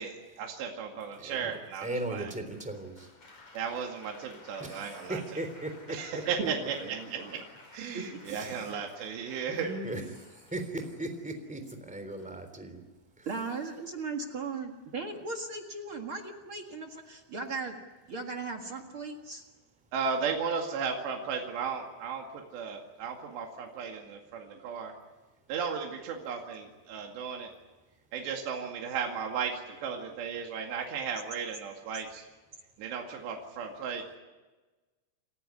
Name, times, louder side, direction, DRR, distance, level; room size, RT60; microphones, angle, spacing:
voice 1, 0.0-2.3 3.5-5.2 5.9-6.7 7.7-9.7 19.9-24.9 25.5-27.5 28.1-32.2 32.8-34.0, right 6 dB, 75° right, 1 dB, 4.4 m, -35 dB
voice 2, 1.2-1.5 1.8-3.1 4.6-6.2 8.3-8.7 9.5-12.8 13.2-13.3, right 2 dB, ahead, 7 dB, 2.7 m, -38 dB
Applause, 2.5-11.4 12.2-12.6, left 3 dB, 40° left, 6.1 m, -55 dB
voice 3, 6.4-7.4 7.9-8.5 13.3-17.8 18.1-19.4, right 4 dB, 50° right, 3 dB, 1.7 m, -38 dB
29.5 x 15.0 x 9.8 m, 1.2 s
omnidirectional pair, 5.0 m